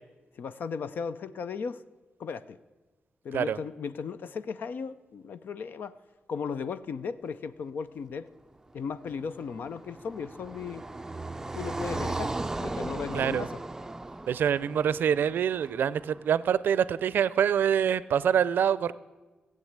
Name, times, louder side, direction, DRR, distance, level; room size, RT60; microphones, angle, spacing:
voice 1, 0.4-1.8 2.2-2.6 3.2-6.0 6.3-8.3 8.7-10.9 11.5-13.6, left 6 dB, 75° left, 13 dB, 0.6 m, -36 dB
Car passing by, 9.0-16.2, right 2 dB, 15° right, 0.4 m, -37 dB
voice 2, 13.1-13.5 14.3-18.9, right 8 dB, 85° right, 18 dB, 0.5 m, -25 dB
16.5 x 7.8 x 8.7 m, 1.2 s
wide cardioid pair, 130°, 3 cm